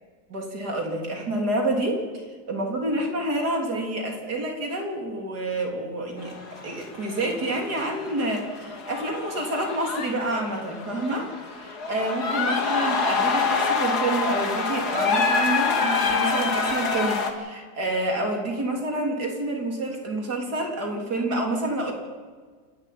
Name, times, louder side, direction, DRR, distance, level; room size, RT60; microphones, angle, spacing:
voice 1, 0.3-6.3 6.6-21.9, right 1 dB, 85° right, 2 dB, 3.9 m, -28 dB
sound 1, 6.2-17.3, left 4 dB, 80° left, 2.4 m, -26 dB
27.5 x 11.5 x 9.4 m, 1.5 s
omnidirectional pair, 1.7 m